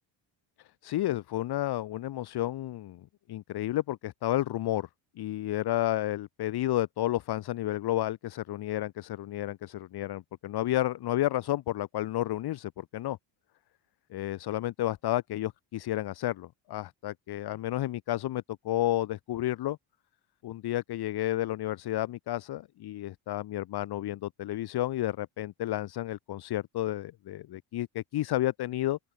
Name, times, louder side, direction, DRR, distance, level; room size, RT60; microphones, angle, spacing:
voice 1, 0.8-4.9 5.2-13.2 14.1-19.8 20.4-29.0, left 14 dB, 50° left, 1.4 m, -31 dB
open air
cardioid pair, 170°, 49 cm